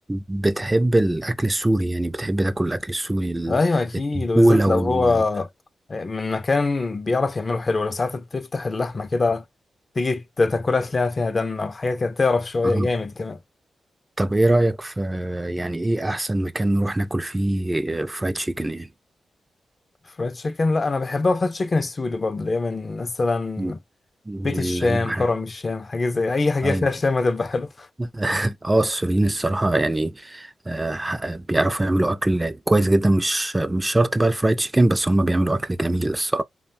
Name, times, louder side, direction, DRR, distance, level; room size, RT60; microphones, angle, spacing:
voice 1, 0.1-3.6 4.3-5.2 12.7-12.9 14.2-18.9 23.6-23.7 24.3-25.2 26.6-26.9 28.0-36.4, right 1 dB, 20° right, 0.4 m, -22 dB
voice 2, 3.5-5.5 5.9-9.4 10.0-13.4 20.2-23.8 24.4-27.9, left 3 dB, 45° left, 0.4 m, -23 dB
2.9 x 2.1 x 2.6 m
cardioid pair, 55°, 0 cm